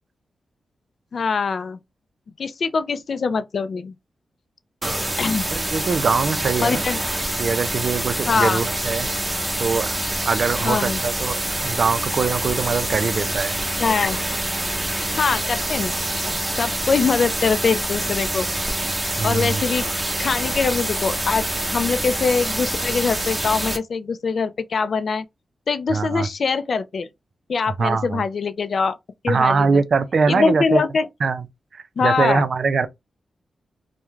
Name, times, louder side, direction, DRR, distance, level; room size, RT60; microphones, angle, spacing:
voice 1, 1.1-1.8 2.4-3.9 5.2-5.5 6.6-7.0 8.3-8.6 10.6-11.0 13.8-14.2 15.1-15.9 16.6-18.5 19.2-19.9 20.2-25.3 25.7-27.1 27.5-28.9 29.2-29.8 30.3-31.1 32.0-32.5, left 5 dB, 65° left, 0.3 m, -23 dB
sound 1, 4.8-23.8, right 1 dB, 20° right, 0.7 m, -26 dB
voice 2, 5.5-6.8 7.4-9.1 9.6-9.9 10.3-13.6 19.2-19.6 25.9-26.3 27.8-28.2 29.3-30.8 31.2-31.5 31.7-32.9, right 5 dB, 65° right, 0.4 m, -22 dB
2.3 x 2.1 x 3.0 m
cardioid pair, 60°, 0 cm